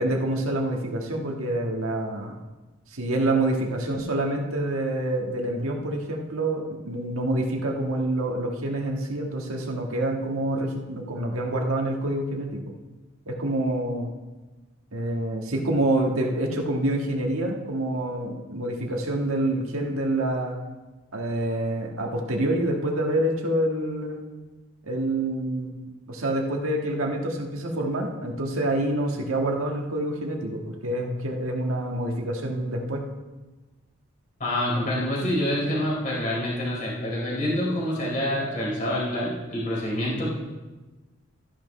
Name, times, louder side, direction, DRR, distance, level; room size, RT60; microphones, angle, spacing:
voice 1, 0.0-2.4 2.9-12.6 13.3-14.1 14.9-20.6 21.1-24.2 24.8-25.7 26.1-33.1, right 1 dB, 85° right, 1 dB, 1.5 m, -27 dB
voice 2, 34.4-40.3, left 1 dB, 40° left, -5 dB, 3.7 m, -27 dB
13.5 x 10.5 x 3.2 m, 1.2 s
head